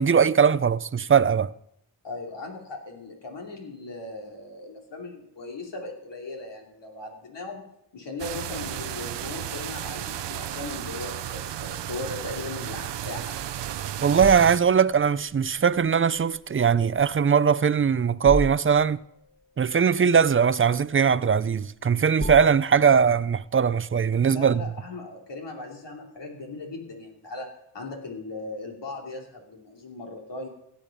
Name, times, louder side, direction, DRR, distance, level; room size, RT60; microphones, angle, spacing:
voice 1, 0.0-1.5 14.0-19.0 19.6-24.6, right 7 dB, 30° right, 0.5 m, -20 dB
voice 2, 2.0-7.6 7.9-13.3 24.2-27.5 27.7-30.5, left 3 dB, 80° left, 2.9 m, -38 dB
sound 1, 8.2-14.6, right 11 dB, 75° right, 0.6 m, -34 dB
sound 2, 11.5-23.7, equal, 25° left, 2.0 m, -39 dB
17.0 x 8.7 x 5.2 m
cardioid pair, 55°, 42 cm